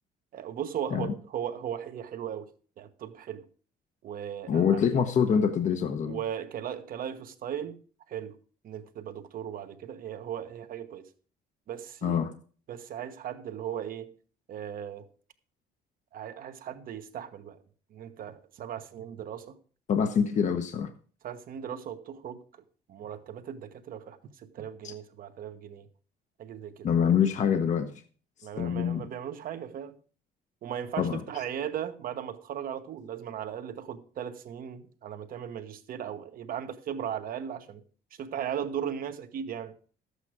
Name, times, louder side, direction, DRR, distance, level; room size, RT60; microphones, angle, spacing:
voice 1, 0.3-2.5 2.8-3.4 4.0-4.8 6.0-7.8 8.1-8.3 8.6-11.1 11.7-12.3 12.7-14.1 14.5-15.1 16.1-17.6 17.9-19.6 21.2-22.4 22.9-25.9 26.4-26.9 28.4-29.9 30.6-37.8 38.2-39.7, right 9 dB, 60° right, 1.2 m, -37 dB
voice 2, 4.5-6.2 12.0-12.3 19.9-20.9 24.8-24.9 26.8-28.0 28.6-29.1 31.0-31.2, left 7 dB, 45° left, 0.9 m, -25 dB
12.0 x 8.2 x 4.8 m
cardioid pair, 110°, 17 cm